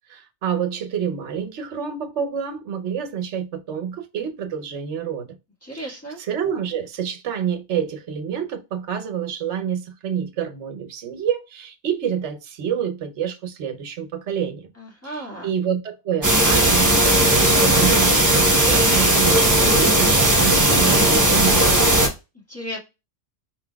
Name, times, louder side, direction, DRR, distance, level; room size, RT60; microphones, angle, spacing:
voice 1, 0.1-5.3 5.7-14.7 15.0-22.0, right 8 dB, 70° right, 1.1 m, -28 dB
voice 2, 5.6-6.2 14.8-15.5 22.5-22.8, equal, 10° left, 1.6 m, -34 dB
sound 1, 16.2-22.1, right 1 dB, 15° right, 0.9 m, -16 dB
4.6 x 4.0 x 2.3 m
omnidirectional pair, 1.3 m